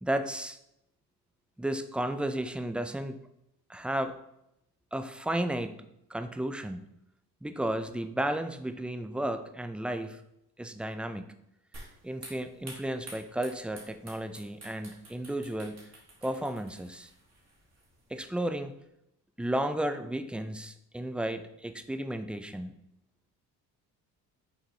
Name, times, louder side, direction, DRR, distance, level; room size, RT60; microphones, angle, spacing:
voice 1, 0.0-0.6 1.6-3.2 3.7-4.1 4.9-5.8 6.1-6.9 7.4-10.2 10.6-11.3 12.0-15.9 16.2-17.1 18.1-18.7 19.4-22.7, right 1 dB, 5° right, 9 dB, 0.4 m, -33 dB
sound 1, 11.7-18.3, right 2 dB, 40° right, 2.7 m, -51 dB
6.6 x 4.0 x 4.7 m, 0.82 s
cardioid pair, 90°, 41 cm